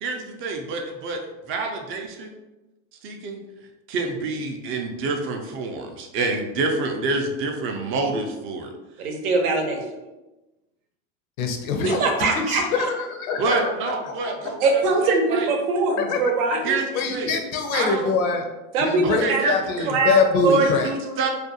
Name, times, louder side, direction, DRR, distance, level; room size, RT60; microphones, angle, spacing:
voice 1, 0.0-1.2 1.5-2.3 3.0-3.4 3.9-8.7 9.0-9.1 13.4-15.5 16.6-17.3 17.7-18.1 19.0-19.9 20.5-21.3, right 3 dB, 35° right, 3 dB, 0.4 m, -28 dB
voice 2, 9.0-9.8 11.8-12.9 14.6-16.7 18.7-19.5 19.9-20.2 20.4-20.7 21.1-21.3, right 3 dB, 90° right, 2 dB, 0.7 m, -22 dB
voice 3, 11.4-13.9 14.2-14.3 16.0-16.3 16.9-18.5 18.8-20.9, left 4 dB, 75° left, 4 dB, 0.6 m, -24 dB
2.4 x 2.2 x 2.7 m, 1.1 s
supercardioid pair, 110°, 42 cm